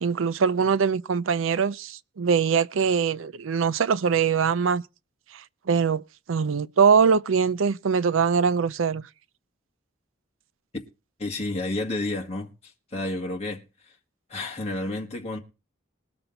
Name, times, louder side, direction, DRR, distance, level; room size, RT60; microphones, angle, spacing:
voice 1, 0.0-4.8 5.3-6.0 6.3-9.1, right 6 dB, 85° right, 0.5 m, -22 dB
voice 2, 11.2-12.5 12.9-13.9 14.3-15.4, left 2 dB, 35° left, 1.9 m, -30 dB
20.5 x 6.9 x 4.0 m
head